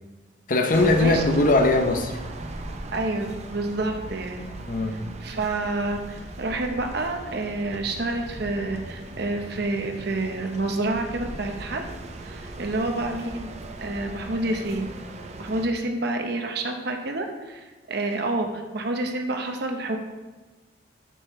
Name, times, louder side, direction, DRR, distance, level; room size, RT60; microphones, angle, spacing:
voice 1, 0.5-2.2 4.7-5.0, left 2 dB, 50° left, 5 dB, 0.7 m, -20 dB
sound 1, 0.7-15.7, right 2 dB, 40° right, 0.6 m, -38 dB
voice 2, 2.9-4.4 4.9-11.8 12.2-13.5 13.8-15.0 15.4-20.0, right 2 dB, 65° right, 4 dB, 0.9 m, -28 dB
9.2 x 7.1 x 3.2 m, 1.2 s
head